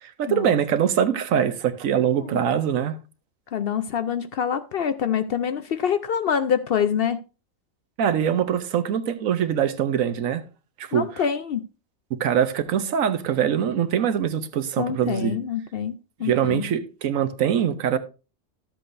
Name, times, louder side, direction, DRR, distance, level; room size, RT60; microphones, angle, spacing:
voice 1, 0.0-3.0 8.0-10.4 10.8-11.2 12.1-15.4 16.2-18.0, right 9 dB, 85° right, 1.2 m, -23 dB
voice 2, 3.5-7.2 10.9-11.6 14.8-16.6, left 8 dB, 60° left, 0.7 m, -26 dB
12.5 x 7.6 x 2.6 m
omnidirectional pair, 1.4 m